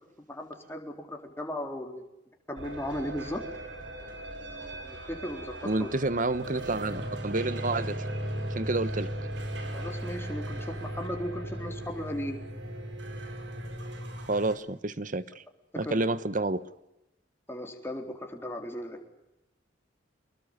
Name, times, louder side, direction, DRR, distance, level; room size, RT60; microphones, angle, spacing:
voice 1, 0.3-2.0 2.5-3.4 4.7-5.9 9.7-12.4 15.9-16.0 17.5-19.0, left 1 dB, 15° left, 4.0 m, -36 dB
sound 1, 2.6-14.6, right 1 dB, 80° right, 5.0 m, -37 dB
voice 2, 5.6-8.1 8.5-9.1 14.3-15.4 15.8-16.7, right 2 dB, 45° right, 1.2 m, -29 dB
26.0 x 22.0 x 8.2 m
head